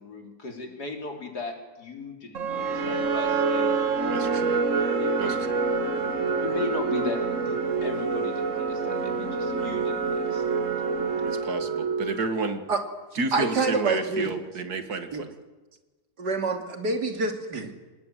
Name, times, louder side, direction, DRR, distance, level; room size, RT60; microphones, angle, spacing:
voice 1, 0.0-3.7 5.0-5.5 6.0-10.6, left 3 dB, 75° left, 3 dB, 4.2 m, -37 dB
sound 1, 2.3-12.5, right 4 dB, 50° right, 2.0 m, -27 dB
voice 2, 4.0-4.6 5.2-5.6 11.2-12.6 13.2-15.3, right 3 dB, 70° right, 9 dB, 2.4 m, -31 dB
voice 3, 13.3-14.3 15.1-15.2 16.2-17.7, right 3 dB, 90° right, 5 dB, 3.3 m, -26 dB
25.5 x 19.5 x 9.3 m, 1.2 s
omnidirectional pair, 1.7 m